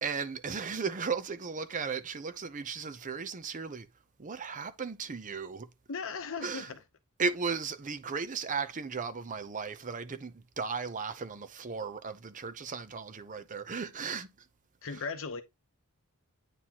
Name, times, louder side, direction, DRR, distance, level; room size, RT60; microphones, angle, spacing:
voice 1, 0.0-3.9 4.2-5.7 6.4-6.7 7.2-14.3, right 5 dB, 35° right, 0.6 m, -36 dB
voice 2, 5.9-6.8 14.8-15.4, left 5 dB, 60° left, 0.8 m, -37 dB
9.1 x 4.1 x 2.9 m
head